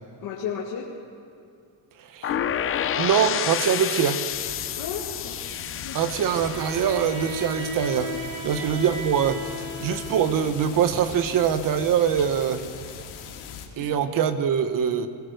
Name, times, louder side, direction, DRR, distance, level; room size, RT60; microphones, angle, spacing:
voice 1, 0.2-1.0 4.7-5.4 5.8-6.2 8.4-8.7 13.8-14.0, left 7 dB, 45° left, -4 dB, 2.2 m, -34 dB
voice 2, 2.1-2.5 3.0-4.2 5.9-8.1 8.4-12.6 13.8-15.1, right 8 dB, 45° right, 10 dB, 1.3 m, -23 dB
sound 1, 2.2-8.1, left 9 dB, 30° left, 0.6 m, -30 dB
sound 2, 4.3-13.7, left 7 dB, 65° left, 2.7 m, -40 dB
Bowed string instrument, 6.3-10.6, left 1 dB, 75° right, 2.9 m, -35 dB
22.5 x 17.5 x 6.6 m, 2.6 s
cardioid pair, 165°, 46 cm